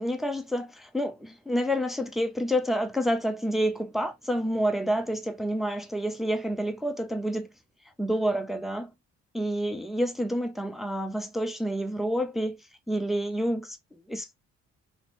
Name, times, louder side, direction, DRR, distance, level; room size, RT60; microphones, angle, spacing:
voice 1, 0.0-7.5 8.0-8.9 9.3-12.6 12.9-14.3, equal, ahead, 0.5 m, -28 dB
2.9 x 2.1 x 2.9 m
cardioid pair, 90°, 30 cm